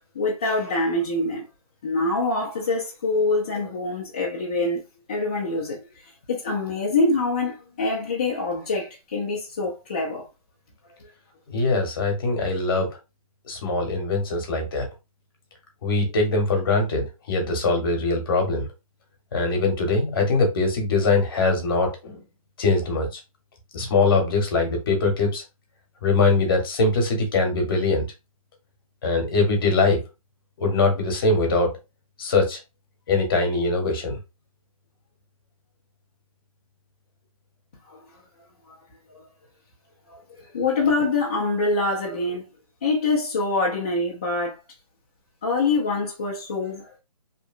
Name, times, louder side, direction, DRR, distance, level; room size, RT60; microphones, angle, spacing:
voice 1, 0.1-1.4 1.8-4.8 5.1-5.8 6.3-10.3 11.0-11.1 37.9-38.0 38.7-38.8 39.1-39.2 40.1-42.5 42.8-44.6 45.4-47.0, left 3 dB, 15° left, 0.4 m, -25 dB
voice 2, 11.5-12.9 13.4-14.9 15.8-18.7 19.3-22.2 22.6-23.2 23.7-25.4 26.0-28.0 29.0-30.0 30.6-31.7 32.2-32.6 33.1-34.2, left 3 dB, 40° left, 0.9 m, -22 dB
2.8 x 2.1 x 2.4 m
hypercardioid pair, 165°, 19 cm